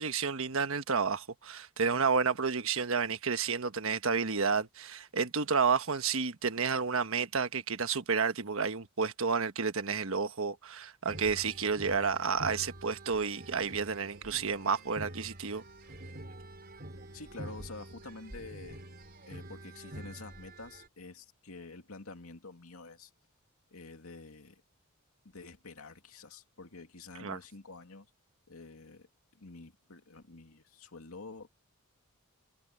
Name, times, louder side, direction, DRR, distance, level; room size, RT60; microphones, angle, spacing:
voice 1, 0.0-15.6 27.2-27.4, right 5 dB, 65° right, 1.3 m, -31 dB
sound 1, 11.1-20.9, right 1 dB, 45° right, 4.5 m, -47 dB
voice 2, 17.1-18.8 19.3-23.1 23.7-24.6 25.2-28.1 28.5-29.1 29.3-31.5, left 3 dB, 75° left, 2.5 m, -48 dB
head